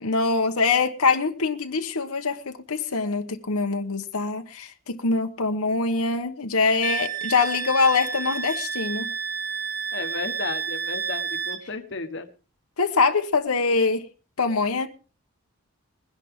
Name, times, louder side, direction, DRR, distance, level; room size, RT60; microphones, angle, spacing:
voice 1, 0.0-9.1 12.8-14.1 14.4-14.9, left 4 dB, 90° left, 1.1 m, -24 dB
Wind instrument woodwind instrument, 6.8-11.6, right 6 dB, 45° right, 1.3 m, -30 dB
voice 2, 9.9-12.3, left 3 dB, 55° left, 1.2 m, -33 dB
21.0 x 11.0 x 3.7 m
head